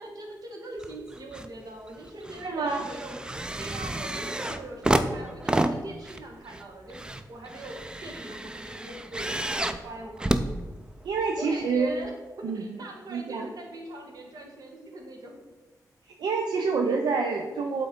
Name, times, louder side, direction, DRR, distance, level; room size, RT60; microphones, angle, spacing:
voice 1, 0.0-3.2 3.6-10.5 11.4-12.1 12.4-15.4, right 1 dB, 65° right, 1 dB, 1.4 m, -42 dB
sound 1, 0.8-1.5 1.9-11.3 12.0-12.1, right 1 dB, 10° right, 0.4 m, -30 dB
voice 2, 2.4-2.8 11.0-11.9 12.4-12.6 13.1-13.5 16.2-17.9, right 4 dB, 85° right, 2 dB, 0.5 m, -27 dB
8.2 x 3.8 x 4.3 m, 1.2 s
wide cardioid pair, 105°, 7 cm